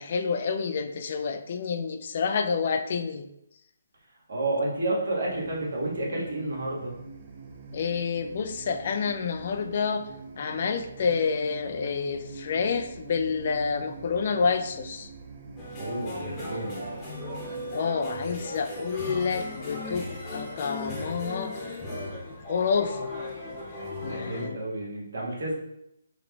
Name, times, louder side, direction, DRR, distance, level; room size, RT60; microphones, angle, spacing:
voice 1, 0.0-3.3 7.7-10.1 10.4-15.1 17.7-21.8 22.5-23.1 24.0-24.6, left 5 dB, 50° left, 8 dB, 0.3 m, -28 dB
voice 2, 4.3-7.0 15.8-16.9 24.0-25.5, right 2 dB, 65° right, -3 dB, 1.3 m, -30 dB
sound 1, 5.3-17.8, right 4 dB, 35° right, 0.5 m, -44 dB
sound 2, 15.6-24.5, left 1 dB, 20° left, 0.9 m, -37 dB
3.8 x 2.2 x 3.4 m, 0.81 s
figure-of-eight pair, 150°, 0 cm